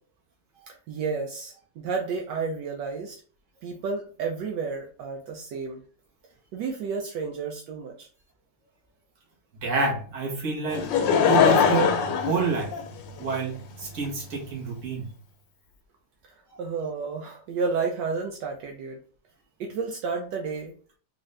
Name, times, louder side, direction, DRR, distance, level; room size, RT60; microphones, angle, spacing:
voice 1, 0.7-3.2 3.6-5.8 6.5-8.1 16.3-19.0 19.6-20.7, right 5 dB, 75° right, 2 dB, 1.2 m, -31 dB
voice 2, 9.6-10.9 11.3-12.0 12.2-12.7 13.2-15.1 16.5-16.6, right 4 dB, 45° right, -2 dB, 1.5 m, -28 dB
Laughter / Crowd, 10.7-13.3 14.0-14.1, left 6 dB, 80° left, 1.3 m, -21 dB
3.9 x 2.5 x 3.2 m, 0.42 s
omnidirectional pair, 2.0 m